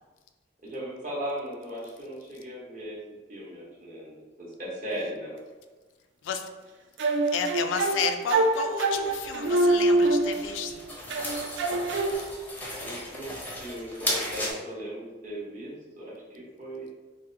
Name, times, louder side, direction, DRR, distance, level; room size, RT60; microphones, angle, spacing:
voice 1, 0.6-3.0 3.3-4.1 4.6-5.4 12.8-13.3 13.6-16.9, equal, 45° right, -5 dB, 0.9 m, -37 dB
sound 1, 7.0-10.7 11.1-12.1, right 2 dB, 70° right, 0.3 m, -25 dB
voice 2, 7.3-10.8, left 7 dB, 90° left, 6 dB, 0.3 m, -31 dB
sound 2, 8.9-14.5, left 1 dB, 10° left, 0.5 m, -36 dB
3.6 x 2.1 x 2.7 m, 1.3 s
head